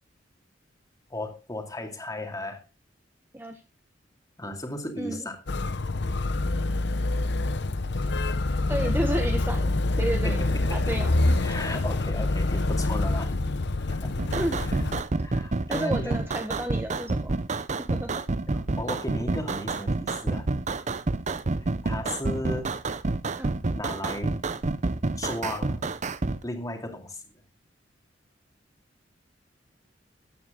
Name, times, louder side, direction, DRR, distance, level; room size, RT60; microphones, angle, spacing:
voice 1, 1.1-2.6 4.4-5.4 10.2-11.0 11.3-13.4 13.8-14.1 14.5-14.8 15.2-16.2 18.5-20.5 21.8-22.7 23.7-24.4 25.2-25.8 26.4-27.2, left 1 dB, 20° left, 4 dB, 2.4 m, -35 dB
voice 2, 5.0-5.3 8.7-9.7 10.0-10.4 10.7-11.4 14.3-14.6 15.7-17.3 17.8-18.2 18.8-18.9 23.4-23.7, right 1 dB, 10° right, 4 dB, 1.3 m, -31 dB
Motor vehicle (road), 5.5-15.0, left 2 dB, 65° left, 0.9 m, -26 dB
sound 1, 14.2-26.4, right 3 dB, 40° right, 0.7 m, -29 dB
13.5 x 9.4 x 3.7 m, 0.27 s
head